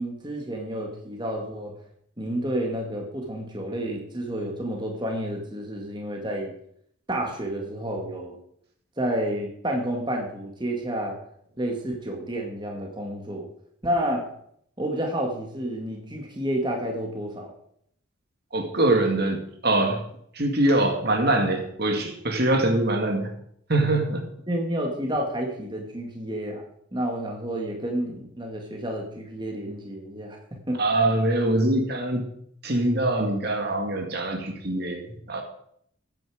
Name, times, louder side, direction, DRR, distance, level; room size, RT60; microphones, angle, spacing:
voice 1, 0.0-1.7 2.2-6.5 7.1-8.4 9.0-11.2 11.6-13.5 13.8-14.3 14.8-17.5 24.5-26.6 26.9-30.8, right 1 dB, 20° right, 1 dB, 2.0 m, -30 dB
voice 2, 18.5-20.0 20.3-23.3 23.7-24.3 30.8-32.2 32.6-35.4, right 1 dB, 50° right, 4 dB, 2.1 m, -23 dB
15.0 x 9.3 x 5.0 m, 0.68 s
head